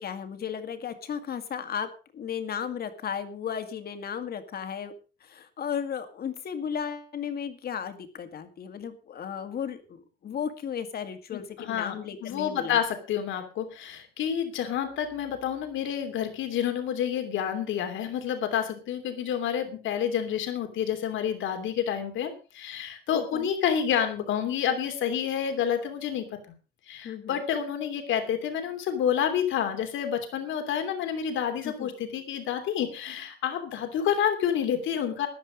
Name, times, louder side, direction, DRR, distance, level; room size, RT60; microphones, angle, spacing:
voice 1, 0.0-4.9 5.2-12.8 23.1-23.5 27.0-27.4 31.6-31.9, left 7 dB, 55° left, 8 dB, 2.1 m, -35 dB
voice 2, 11.3-12.0 12.2-26.2 26.9-35.3, left 9 dB, 90° left, 7 dB, 3.0 m, -29 dB
14.0 x 11.0 x 5.2 m, 0.35 s
cardioid pair, 140°, 19 cm